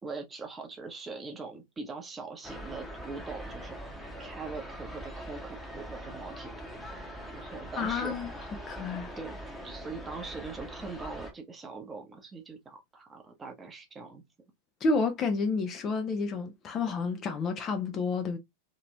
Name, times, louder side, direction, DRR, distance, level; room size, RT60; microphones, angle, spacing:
voice 1, 0.0-6.5 7.3-8.1 9.2-9.4 9.6-14.2, right 4 dB, 15° right, 0.8 m, -42 dB
sound 1, 2.4-11.3, equal, 5° left, 1.0 m, -42 dB
voice 2, 7.8-8.3 8.7-9.1 14.8-18.4, left 4 dB, 30° left, 0.6 m, -30 dB
2.9 x 2.9 x 2.2 m
figure-of-eight pair, 90°, 0 cm